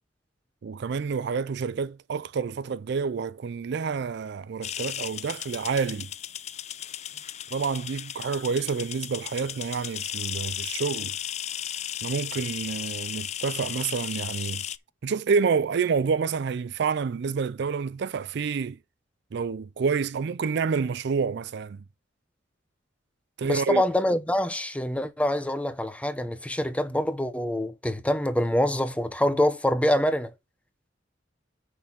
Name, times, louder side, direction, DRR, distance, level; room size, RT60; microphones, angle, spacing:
voice 1, 0.6-6.1 7.5-11.1 12.0-14.6 15.0-18.8 19.3-21.8 23.4-23.8, right 5 dB, 65° right, 0.4 m, -28 dB
sound 1, 4.6-14.8, left 10 dB, 35° left, 0.4 m, -35 dB
voice 2, 23.4-30.3, left 1 dB, 5° left, 0.8 m, -25 dB
6.4 x 5.5 x 6.0 m
head